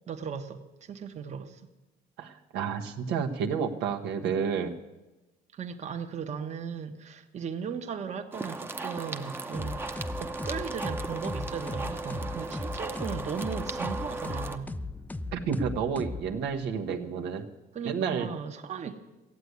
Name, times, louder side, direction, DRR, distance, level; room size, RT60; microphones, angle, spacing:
voice 1, 0.1-1.7 5.5-14.7 17.7-18.9, right 6 dB, 40° right, 5 dB, 1.1 m, -37 dB
voice 2, 2.2-4.7 15.3-17.5 17.8-18.3, right 6 dB, 85° right, 3 dB, 1.3 m, -30 dB
sound 1, 8.3-14.6, right 3 dB, 15° right, 0.8 m, -37 dB
sound 2, 9.5-16.7, left 2 dB, 10° left, 0.4 m, -38 dB
15.0 x 8.2 x 9.5 m, 1.1 s
cardioid pair, 110°, 17 cm